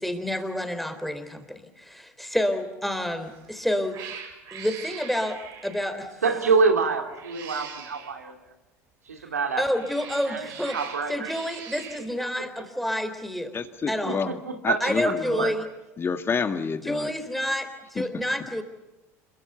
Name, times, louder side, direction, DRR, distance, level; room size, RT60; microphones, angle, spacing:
voice 1, 0.0-4.0 4.5-5.4 5.6-6.2 9.6-10.8 11.1-13.5 13.9-14.2 14.8-15.7 16.8-18.6, equal, ahead, 8 dB, 3.9 m, -29 dB
Cat, 3.2-3.5 3.9-5.9 7.0-8.1 9.5-12.1, right 7 dB, 55° right, 6.5 m, -42 dB
voice 2, 6.2-8.4 9.1-9.6 10.3-10.5 10.7-11.3 14.1-15.5, right 4 dB, 90° right, 5 dB, 2.5 m, -26 dB
voice 3, 13.5-14.4 14.6-15.5 16.0-17.1 18.0-18.1, left 5 dB, 30° left, 8 dB, 2.0 m, -29 dB
27.5 x 23.0 x 7.0 m, 1.0 s
hypercardioid pair, 75°, 8 cm